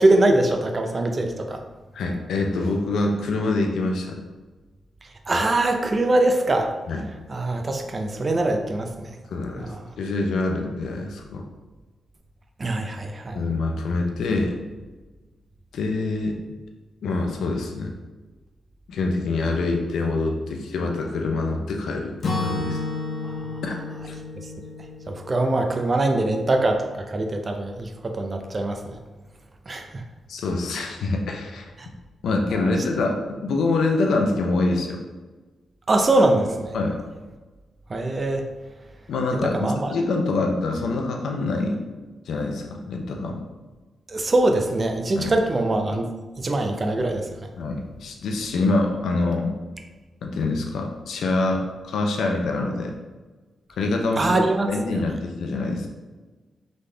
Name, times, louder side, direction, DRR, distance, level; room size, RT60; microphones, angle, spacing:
voice 1, 0.0-1.6 5.3-6.7 7.3-9.2 9.6-9.8 12.6-13.4 23.2-23.5 25.1-29.0 29.7-30.0 31.8-31.9 32.5-32.7 35.9-36.8 37.9-38.4 39.3-39.9 44.1-46.1 46.4-47.3 54.2-55.0, right 2 dB, 30° right, 4 dB, 0.5 m, -23 dB
voice 2, 1.9-4.2 6.9-7.1 9.3-11.4 13.3-14.6 15.7-16.4 17.0-17.9 18.9-22.8 23.6-23.8 24.1-24.2 30.3-31.7 32.2-35.0 36.7-37.0 39.1-41.8 42.3-43.4 45.2-45.3 47.6-49.5 50.2-52.9 53.8-54.4 54.7-55.9, left 3 dB, 90° left, 2 dB, 0.6 m, -25 dB
Acoustic guitar / Strum, 22.2-26.2, left 3 dB, 55° left, 0.7 m, -31 dB
4.0 x 3.4 x 3.3 m, 1.2 s
wide cardioid pair, 140°, 0 cm